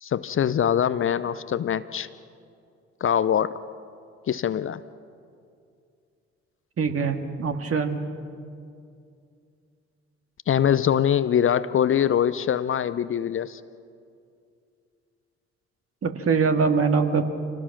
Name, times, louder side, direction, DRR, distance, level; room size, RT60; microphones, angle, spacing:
voice 1, 0.0-2.1 3.0-3.5 4.3-4.8 10.5-13.6, left 9 dB, 40° left, 15 dB, 0.7 m, -23 dB
voice 2, 6.8-8.0 16.0-17.2, right 5 dB, 40° right, 6 dB, 2.0 m, -23 dB
26.5 x 18.5 x 6.0 m, 2.4 s
figure-of-eight pair, 45°, 34 cm